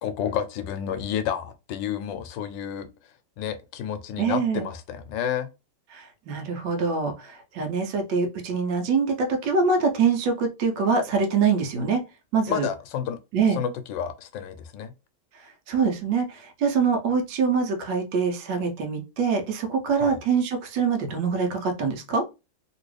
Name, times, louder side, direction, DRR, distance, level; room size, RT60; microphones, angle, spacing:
voice 1, 0.0-2.9 3.4-5.5 12.5-13.2 13.6-14.9 20.0-20.2, left 8 dB, 85° left, 1.3 m, -30 dB
voice 2, 4.2-4.7 5.9-12.0 12.3-12.7 13.3-13.6 15.7-22.2, right 5 dB, 90° right, 1.4 m, -24 dB
3.0 x 3.0 x 3.1 m
omnidirectional pair, 1.9 m